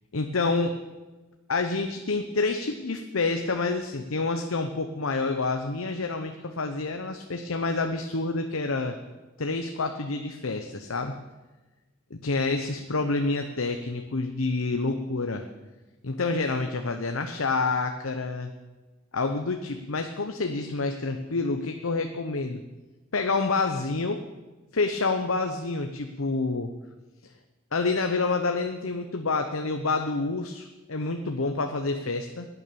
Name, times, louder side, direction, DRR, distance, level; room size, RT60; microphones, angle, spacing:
voice 1, 0.1-0.8 1.5-9.0 9.4-11.1 12.1-15.4 16.0-18.5 19.1-22.6 23.1-24.2 24.7-26.7 27.7-32.5, left 3 dB, 80° left, 6 dB, 0.9 m, -28 dB
16.5 x 9.7 x 7.0 m, 1.2 s
head